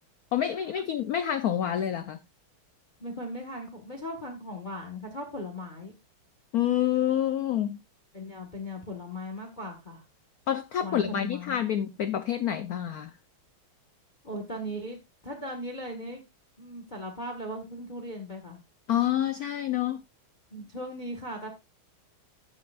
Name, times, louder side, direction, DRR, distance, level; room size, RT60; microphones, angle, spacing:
voice 1, 0.3-2.2 6.5-7.8 10.5-13.1 18.9-20.0, left 10 dB, 70° left, 0.9 m, -27 dB
voice 2, 3.0-6.0 8.1-10.0 10.8-11.6 14.2-16.2 16.6-18.6 20.5-21.5, left 1 dB, 25° left, 1.6 m, -38 dB
14.5 x 7.8 x 2.5 m
omnidirectional pair, 2.3 m